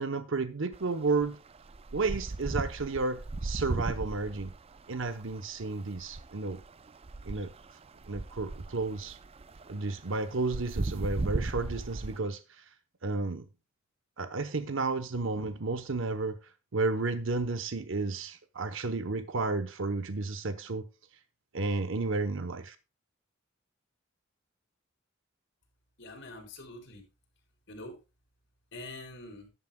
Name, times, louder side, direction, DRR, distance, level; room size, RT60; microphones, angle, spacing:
voice 1, 0.0-1.4 1.9-4.5 4.9-6.6 7.2-7.5 8.1-9.2 9.7-12.7 13.0-13.5 14.2-16.4 16.7-20.8 21.5-22.8, right 3 dB, 65° right, 0.8 m, -32 dB
sound 1, 0.7-0.8 1.2-12.2, right 2 dB, 30° right, 0.4 m, -37 dB
voice 2, 26.0-27.0 27.7-27.9 28.7-29.5, left 2 dB, 60° left, 4.7 m, -44 dB
13.5 x 11.0 x 2.2 m
head